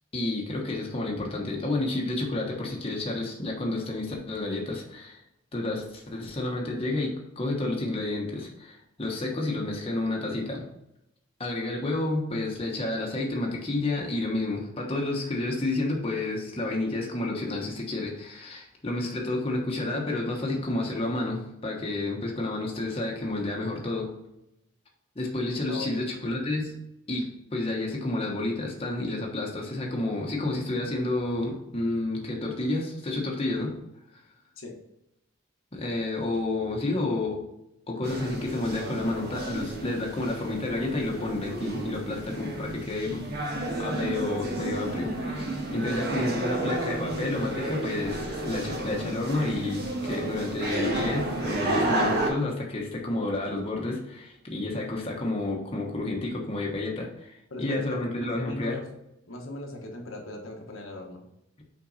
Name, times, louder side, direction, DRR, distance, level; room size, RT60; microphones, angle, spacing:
voice 1, 0.1-5.2 5.5-10.6 11.4-24.1 25.1-26.8 27.1-33.7 34.1-34.2 35.7-37.4 37.9-43.2 43.8-58.8, left 2 dB, 25° left, -1 dB, 1.1 m, -30 dB
voice 2, 25.7-26.0 34.6-34.7 57.5-57.8 58.4-58.8 59.3-61.2, left 2 dB, 75° left, 1 dB, 1.2 m, -38 dB
sound 1, 38.0-52.3, right 1 dB, 50° right, 1.7 m, -32 dB
5.8 x 4.5 x 4.1 m, 0.84 s
head